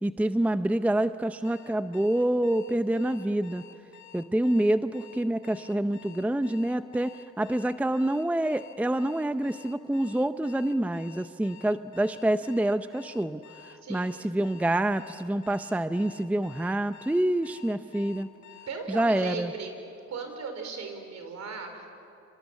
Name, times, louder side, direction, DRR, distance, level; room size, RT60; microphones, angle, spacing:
voice 1, 0.0-3.6 4.1-18.3 18.9-19.5, right 1 dB, 5° right, 12 dB, 0.6 m, -27 dB
Alarm, 1.4-18.7, left 11 dB, 70° left, 2.1 m, -51 dB
voice 2, 13.8-14.1 18.7-19.7 20.1-21.9, right 4 dB, 65° right, 5 dB, 4.9 m, -37 dB
27.5 x 27.0 x 7.4 m, 2.6 s
cardioid pair, 90°, 30 cm